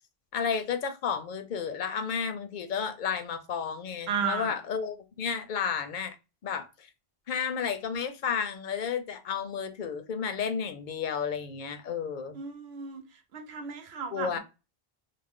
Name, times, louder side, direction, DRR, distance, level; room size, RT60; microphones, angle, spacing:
voice 1, 0.3-6.2 6.4-6.9 7.3-12.4 14.1-14.4, left 6 dB, 60° left, 0.6 m, -32 dB
voice 2, 4.1-4.5 12.3-13.0 13.3-14.4, right 6 dB, 90° right, 0.9 m, -33 dB
2.4 x 2.0 x 3.5 m
omnidirectional pair, 1.0 m